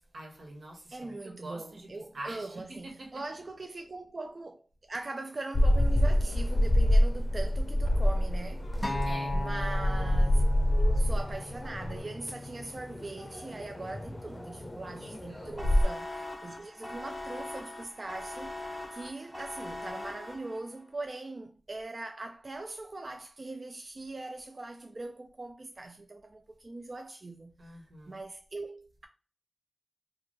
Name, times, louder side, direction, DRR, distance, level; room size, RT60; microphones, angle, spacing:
voice 1, 0.1-1.9 2.1-3.2 8.8-9.4 15.0-15.6 27.6-28.2, right 1 dB, 90° right, 1.2 m, -45 dB
voice 2, 0.9-8.7 9.3-10.4 10.7-18.5 18.9-27.8 28.1-29.1, right 2 dB, 50° right, 0.3 m, -41 dB
sound 1, 5.5-15.8, left 1 dB, 40° left, 0.6 m, -27 dB
Acoustic guitar, 8.8-13.1 13.9-14.0, left 2 dB, 20° left, 1.2 m, -38 dB
sound 2, 15.6-20.8, left 2 dB, 5° right, 0.8 m, -41 dB
4.2 x 2.3 x 3.1 m
wide cardioid pair, 70°, 0 cm